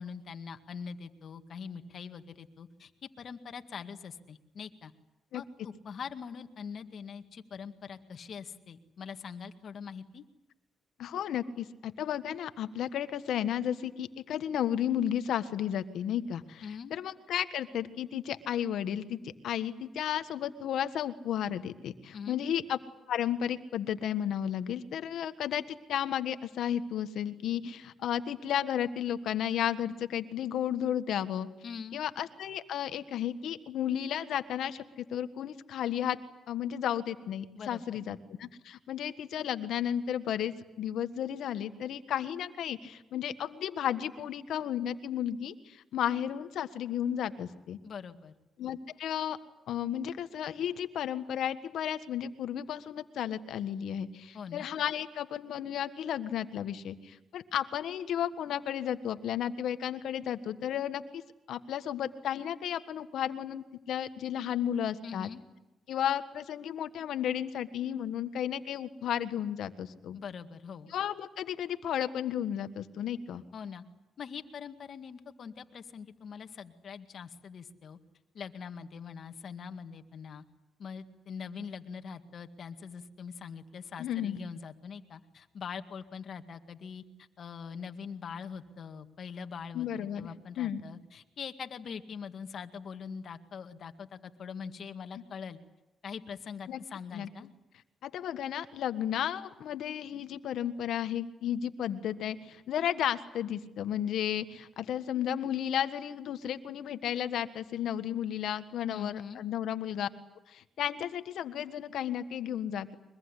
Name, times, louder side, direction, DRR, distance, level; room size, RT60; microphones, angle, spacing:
voice 1, 0.0-4.9 5.3-10.2 16.6-16.9 22.1-22.4 31.6-32.0 37.5-37.8 47.8-48.3 54.3-54.7 65.0-65.4 70.1-70.9 73.5-73.8 74.2-78.0 78.3-80.4 80.8-87.0 87.4-95.6 96.0-97.5 108.9-109.4, left 6 dB, 60° left, 7 dB, 2.0 m, -43 dB
voice 2, 11.0-22.8 23.1-31.5 31.9-36.2 36.5-47.8 48.6-49.4 49.7-61.2 61.5-65.3 65.9-70.2 70.9-73.4 84.0-84.4 89.7-90.3 90.6-90.8 96.7-96.8 97.1-97.3 98.0-110.1 110.5-112.9, left 10 dB, 75° left, 11 dB, 1.5 m, -33 dB
23.5 x 22.0 x 9.9 m, 0.98 s
supercardioid pair, 70°, 0 cm